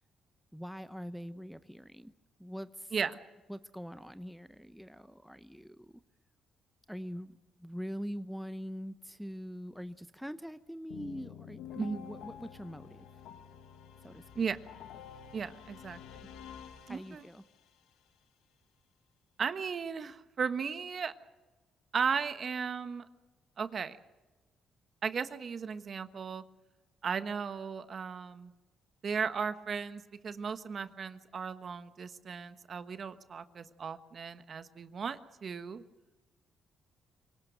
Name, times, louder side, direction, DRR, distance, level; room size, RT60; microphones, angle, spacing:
voice 1, 0.5-2.1 2.4-2.9 3.5-5.9 6.9-13.1 14.0-14.5 16.9-17.4, equal, ahead, 11 dB, 0.8 m, -43 dB
sound 1, 10.9-17.7, left 8 dB, 85° left, 1.5 m, -49 dB
voice 2, 15.3-16.2 16.9-17.3 19.4-21.1 21.9-23.1 23.6-24.0 25.0-26.4 27.0-28.5 29.0-35.8, right 6 dB, 50° right, 11 dB, 1.3 m, -36 dB
25.0 x 18.5 x 8.0 m, 1.2 s
cardioid pair, 90°, 0 cm